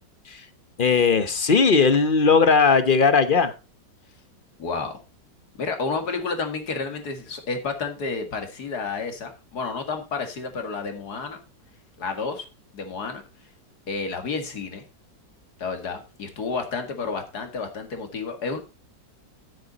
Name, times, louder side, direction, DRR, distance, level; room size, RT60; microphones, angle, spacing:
voice 1, 0.8-3.5, left 5 dB, 40° left, 12 dB, 0.8 m, -18 dB
voice 2, 4.6-5.0 5.6-11.4 12.0-12.5 12.7-13.2 13.9-14.8 15.6-18.6, left 4 dB, 60° left, 6 dB, 2.4 m, -30 dB
9.6 x 9.3 x 4.0 m, 0.30 s
omnidirectional pair, 2.0 m